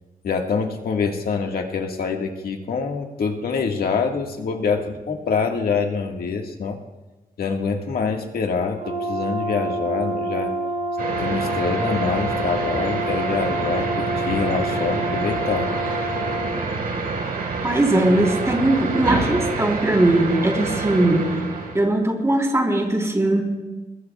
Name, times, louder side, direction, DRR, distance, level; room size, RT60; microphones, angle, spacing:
voice 1, 0.2-6.8 7.4-10.5 11.2-15.7, left 5 dB, 80° left, 2 dB, 1.8 m, -25 dB
Brass instrument, 8.8-16.5, right 1 dB, 60° right, 3.7 m, -27 dB
sound 1, 11.0-21.8, right 3 dB, 80° right, 4.8 m, -27 dB
voice 2, 17.6-21.3 21.7-23.4, right 1 dB, 20° right, 0 dB, 3.7 m, -19 dB
22.0 x 21.5 x 2.4 m, 1.2 s
wide cardioid pair, 115°, 15 cm